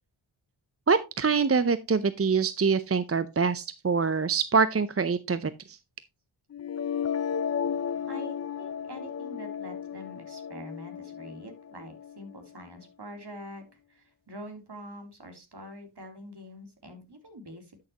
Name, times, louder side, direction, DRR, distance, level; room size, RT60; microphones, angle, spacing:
voice 1, 0.9-5.8, right 5 dB, 30° right, 14 dB, 0.6 m, -25 dB
sound 1, 6.5-12.5, left 7 dB, 35° left, 0.4 m, -34 dB
voice 2, 8.1-13.6 13.9-17.9, equal, 55° right, 4 dB, 3.3 m, -45 dB
11.5 x 6.6 x 2.9 m, 0.25 s
cardioid pair, 45°, 48 cm